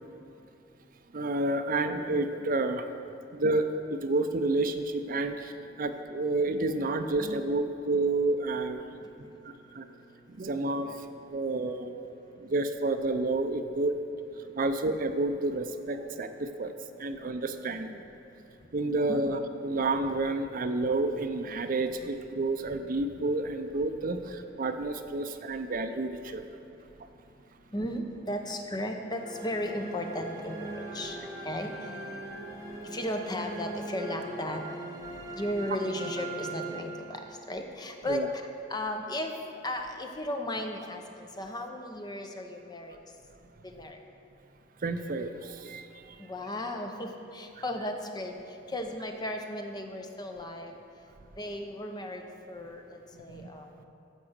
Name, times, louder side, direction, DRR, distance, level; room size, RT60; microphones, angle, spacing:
voice 1, 1.1-2.8 3.3-5.5 5.8-8.8 9.4-9.9 10.3-11.9 12.4-14.0 14.6-16.7 17.0-18.0 18.7-26.6 38.1-38.3 44.8-46.2 53.3-53.5, right 2 dB, 50° right, 8 dB, 0.5 m, -30 dB
voice 2, 9.0-10.5 11.1-11.6 12.1-12.5 14.4-14.6 17.0-17.1 18.6-18.7 19.1-19.2 19.7-19.9 27.7-31.2 31.4-32.0 32.9-34.6 35.4-39.4 39.6-43.0 43.6-44.0 46.2-48.4 48.7-50.8 51.4-53.8, left 1 dB, 20° left, 4 dB, 0.8 m, -36 dB
sound 1, 29.2-37.5, right 2 dB, 20° right, 1.5 m, -40 dB
14.5 x 5.0 x 6.6 m, 2.9 s
head